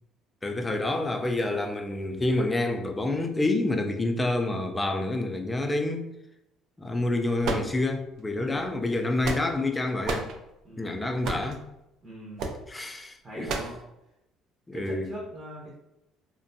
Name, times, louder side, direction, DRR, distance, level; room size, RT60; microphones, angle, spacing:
voice 1, 0.4-6.0 6.8-10.3 10.8-11.6 12.7-13.5 14.7-15.1, left 2 dB, 15° left, 4 dB, 0.3 m, -28 dB
sound 1, 7.4-8.2 8.9-9.7 10.0-10.4 11.2-11.6 12.4-12.6 13.5-13.8, right 3 dB, 65° right, 0.4 m, -31 dB
voice 2, 8.3-8.7 10.6-11.1 12.0-12.6 13.2-13.7 14.7-15.7, right 1 dB, 25° right, -4 dB, 0.7 m, -41 dB
2.5 x 2.1 x 2.6 m, 0.88 s
cardioid pair, 115°, 0 cm